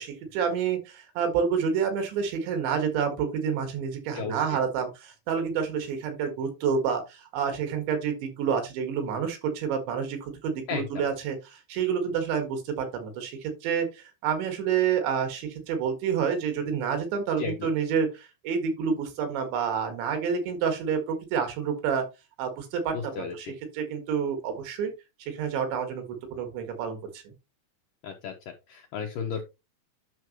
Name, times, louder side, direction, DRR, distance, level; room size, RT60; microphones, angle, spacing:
voice 1, 0.0-22.1 22.4-23.5 23.7-24.9 25.2-27.3, right 7 dB, 80° right, 7 dB, 4.0 m, -29 dB
voice 2, 4.1-4.6 10.7-11.0 17.4-17.7 22.9-23.5 28.0-28.3 28.7-29.4, left 6 dB, 80° left, 3 dB, 2.0 m, -34 dB
10.5 x 6.2 x 3.0 m, 0.25 s
omnidirectional pair, 5.1 m